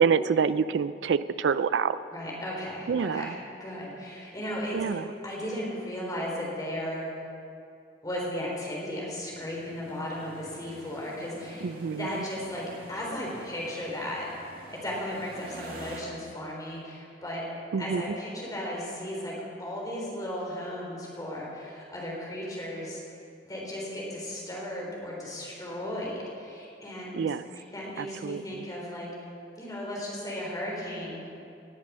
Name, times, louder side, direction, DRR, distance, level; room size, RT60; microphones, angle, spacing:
voice 1, 0.0-2.0 2.9-3.3 4.7-5.0 11.6-12.1 17.7-18.0 27.1-27.4 28.0-28.6, right 6 dB, 85° right, 15 dB, 0.4 m, -26 dB
voice 2, 2.1-7.1 8.0-11.7 11.9-12.6 12.9-14.3 14.8-17.5 17.8-19.3 19.6-23.0 23.5-27.3 27.6-29.1 29.6-31.3, left 1 dB, 20° left, -4 dB, 3.7 m, -35 dB
sound 1, 9.3-16.0, right 1 dB, 55° right, 2.1 m, -48 dB
19.0 x 7.5 x 6.2 m, 2.6 s
head